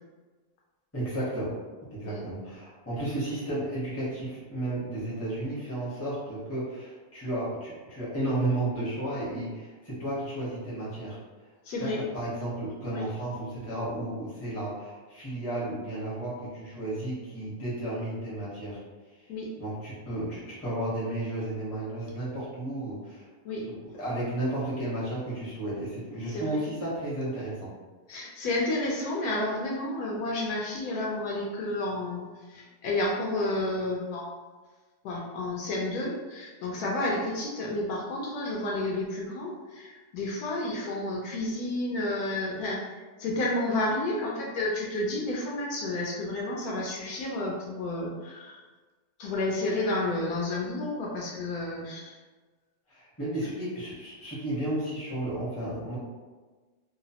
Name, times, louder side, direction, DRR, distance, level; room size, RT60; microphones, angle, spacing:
voice 1, 0.9-1.5 1.9-11.2 11.8-18.8 19.6-23.3 23.6-27.7 52.9-56.0, right 1 dB, 15° left, -9 dB, 0.6 m, -33 dB
voice 2, 11.7-12.0 12.9-13.1 19.3-19.5 23.4-23.7 26.3-26.6 28.1-34.3 35.0-48.6 49.2-52.2, left 2 dB, 75° left, -3 dB, 1.1 m, -31 dB
2.9 x 2.0 x 2.7 m, 1.3 s
omnidirectional pair, 1.7 m